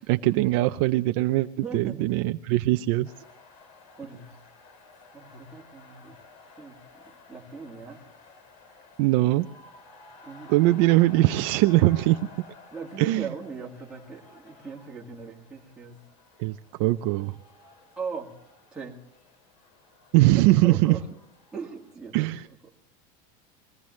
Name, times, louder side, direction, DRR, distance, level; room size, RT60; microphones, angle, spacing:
voice 1, 0.1-1.5 1.7-3.1 9.0-9.5 10.5-12.5 13.0-13.3 16.4-17.3 20.1-20.9 22.1-22.4, right 18 dB, 50° right, 9 dB, 0.4 m, -21 dB
voice 2, 1.6-2.1 2.8-2.9 4.0-4.4 5.1-6.2 6.6-7.0 7.3-8.0 10.2-10.7 12.7-16.0 18.0-18.3 18.7-19.0 20.4-21.1 21.5-22.3, right 5 dB, 5° right, -4 dB, 2.1 m, -39 dB
sound 1, 3.0-21.9, left 3 dB, 50° left, 2.4 m, -53 dB
22.5 x 16.5 x 3.2 m, 0.79 s
cardioid pair, 175°, 18 cm